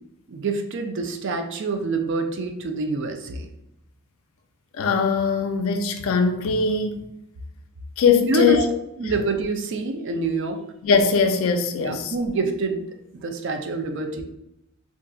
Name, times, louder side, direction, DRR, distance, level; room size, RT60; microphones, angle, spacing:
voice 1, 0.3-3.5 8.2-8.6 9.0-10.6 11.8-12.8 13.1-14.2, right 3 dB, 60° right, 0.4 m, -26 dB
voice 2, 4.8-7.1 8.0-8.6 9.0-9.1 10.8-12.1, left 5 dB, 70° left, 0.3 m, -21 dB
2.5 x 2.3 x 3.7 m
head